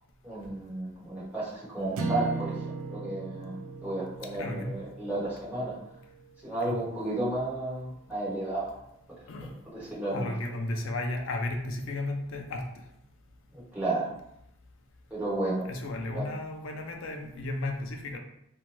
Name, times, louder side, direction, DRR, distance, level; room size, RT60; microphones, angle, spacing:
voice 1, 0.2-2.6 2.9-5.7 6.4-8.8 9.4-10.3 13.5-14.2 15.1-15.6 16.1-16.3, right 2 dB, 5° right, -9 dB, 1.0 m, -33 dB
sound 1, 2.0-6.3, right 4 dB, 70° right, 0.4 m, -37 dB
voice 2, 4.3-4.8 6.7-6.8 9.3-9.5 10.1-12.8 15.7-18.2, left 2 dB, 60° left, 2 dB, 0.4 m, -34 dB
2.7 x 2.1 x 3.0 m, 0.77 s
head